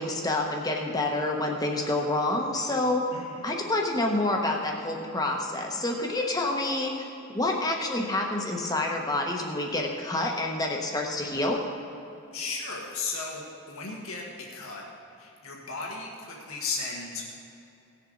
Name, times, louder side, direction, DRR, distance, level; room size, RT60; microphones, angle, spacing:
voice 1, 0.0-3.0 3.4-11.6, left 2 dB, 15° left, 1 dB, 1.1 m, -28 dB
voice 2, 12.3-14.8 15.1-17.4, left 4 dB, 80° left, -2 dB, 1.5 m, -35 dB
17.5 x 7.0 x 3.9 m, 2.8 s
head